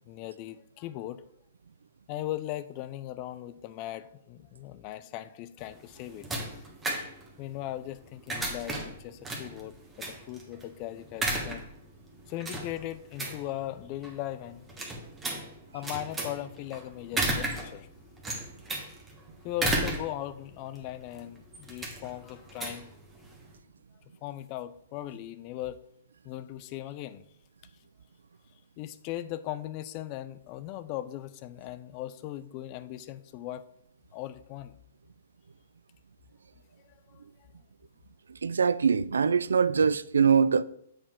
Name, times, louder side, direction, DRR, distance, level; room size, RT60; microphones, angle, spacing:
voice 1, 0.1-1.3 2.1-6.7 7.4-11.7 12.3-14.7 15.7-17.9 19.4-22.9 24.2-25.8 26.2-27.2 28.8-33.7 34.1-34.7 37.1-37.2, left 13 dB, 40° left, 0.4 m, -38 dB
sound 1, 5.6-23.6, right 2 dB, 10° right, 1.3 m, -35 dB
voice 2, 38.3-40.6, right 6 dB, 80° right, 0.3 m, -23 dB
7.7 x 4.3 x 3.7 m
hypercardioid pair, 125°, 0 cm